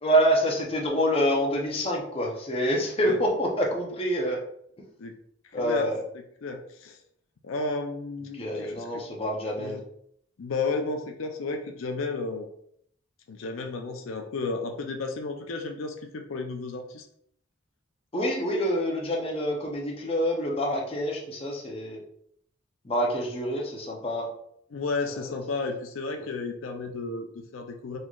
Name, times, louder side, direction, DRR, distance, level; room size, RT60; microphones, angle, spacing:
voice 1, 0.0-4.4 5.5-6.0 8.3-9.8 18.1-22.0 22.8-24.3 25.1-25.2, equal, 30° left, -1 dB, 0.7 m, -26 dB
voice 2, 5.6-5.9 6.4-7.0 7.4-9.0 9.6-9.8 10.4-12.5 13.3-17.1 24.7-28.0, left 3 dB, 85° left, 4 dB, 0.5 m, -33 dB
4.0 x 3.1 x 2.4 m, 0.69 s
head